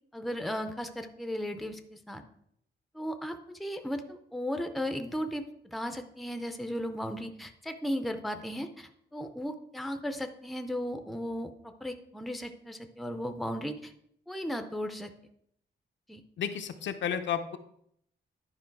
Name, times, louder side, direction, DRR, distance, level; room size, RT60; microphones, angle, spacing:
voice 1, 0.1-2.2 2.9-13.9 14.3-15.1 16.1-16.2, equal, ahead, 7 dB, 0.5 m, -36 dB
voice 2, 16.4-17.6, left 8 dB, 75° left, 7 dB, 0.7 m, -32 dB
10.5 x 5.3 x 4.6 m, 0.70 s
wide cardioid pair, 175°, 19 cm